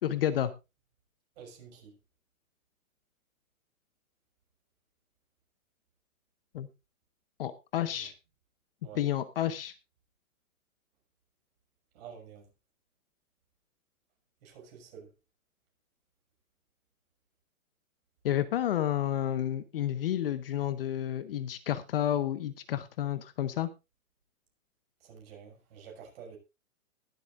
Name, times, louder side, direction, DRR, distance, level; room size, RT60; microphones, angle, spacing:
voice 1, 0.0-0.5 6.5-6.7 7.4-8.1 9.0-9.7 18.2-23.7, left 11 dB, 40° left, 0.8 m, -30 dB
voice 2, 1.4-1.9 7.9-8.1 8.8-9.0 11.9-12.5 14.4-15.1 25.0-26.4, right 7 dB, 45° right, 5.9 m, -49 dB
21.5 x 8.1 x 2.5 m
hypercardioid pair, 165°, 42 cm